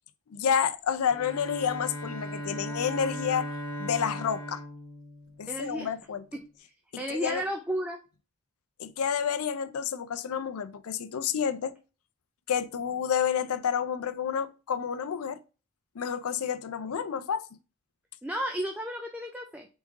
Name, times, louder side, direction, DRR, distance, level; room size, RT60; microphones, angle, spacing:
voice 1, 0.3-3.5 3.8-4.6 5.4-6.2 7.1-7.4 8.8-11.7 12.5-15.4 16.0-17.5, left 7 dB, 85° left, 0.5 m, -29 dB
Bowed string instrument, 1.1-5.9, equal, 55° left, 0.9 m, -38 dB
voice 2, 5.5-5.9 6.3-6.4 7.0-8.0 18.2-19.7, equal, 5° right, 0.4 m, -33 dB
4.1 x 3.7 x 3.5 m
head